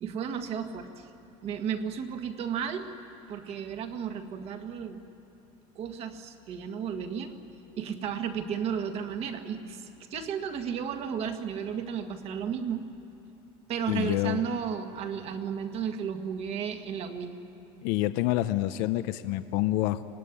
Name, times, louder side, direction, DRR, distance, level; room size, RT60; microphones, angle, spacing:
voice 1, 0.0-1.1 1.4-2.9 3.3-5.0 5.8-7.4 7.8-12.9 13.7-17.3, right 7 dB, 45° right, 6 dB, 1.7 m, -33 dB
voice 2, 13.9-14.4 17.8-20.0, left 16 dB, 70° left, 11 dB, 0.7 m, -27 dB
25.5 x 18.0 x 10.0 m, 2.9 s
cardioid pair, 150°, 15 cm